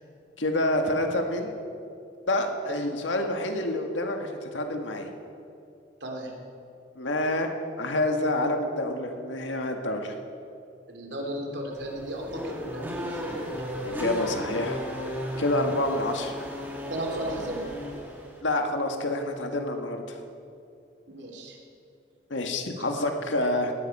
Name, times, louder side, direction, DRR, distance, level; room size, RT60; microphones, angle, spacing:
voice 1, 0.4-1.5 2.3-5.1 7.0-7.5 7.8-10.2 13.8-14.8 15.4-16.3 18.4-20.2 22.3-23.7, left 1 dB, 85° left, 4 dB, 1.7 m, -27 dB
voice 2, 6.0-6.3 10.9-13.3 15.9-16.0 16.9-17.6 21.1-21.6 22.8-23.1, right 1 dB, 70° right, 1 dB, 2.9 m, -35 dB
Race car auto racing / Accelerating revving vroom, 11.7-18.4, equal, 10° right, 2.2 m, -35 dB
18.0 x 13.5 x 5.5 m, 2.6 s
head